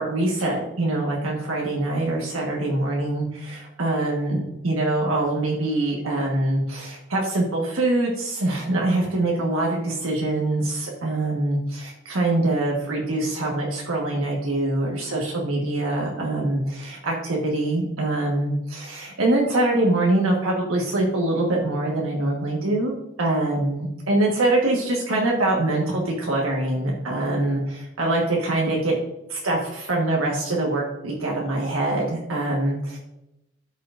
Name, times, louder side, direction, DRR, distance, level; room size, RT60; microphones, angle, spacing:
voice 1, 0.0-22.9 23.2-29.0 29.3-33.0, right 2 dB, 80° right, -2 dB, 1.4 m, -24 dB
13.0 x 5.6 x 2.5 m, 0.92 s
head